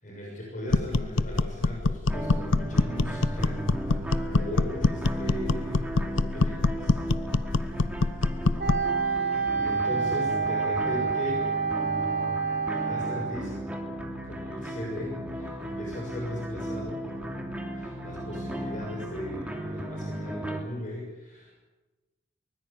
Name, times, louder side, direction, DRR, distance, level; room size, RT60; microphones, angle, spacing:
voice 1, 0.0-3.6 3.8-7.1 8.9-11.5 12.7-13.5 14.2-21.6, left 1 dB, 40° left, -1 dB, 6.6 m, -38 dB
sound 1, 0.7-8.9, left 3 dB, 90° left, 0.8 m, -25 dB
sound 2, 2.1-20.6, right 1 dB, 5° right, 3.0 m, -36 dB
Wind instrument woodwind instrument, 8.6-13.4, right 5 dB, 55° right, 5.5 m, -28 dB
24.0 x 21.0 x 8.6 m, 1.1 s
head